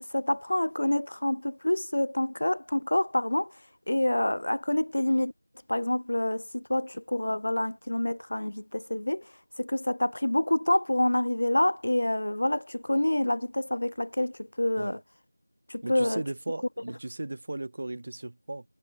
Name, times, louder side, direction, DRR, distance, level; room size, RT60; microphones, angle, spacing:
voice 1, 0.1-3.5 3.9-5.3 5.7-9.2 9.6-15.0 15.7-16.2, left 1 dB, 40° left, 6.3 m, -27 dB
voice 2, 15.8-18.6, right 2 dB, 20° right, 6.6 m, -36 dB
figure-of-eight pair, 180°, 0 cm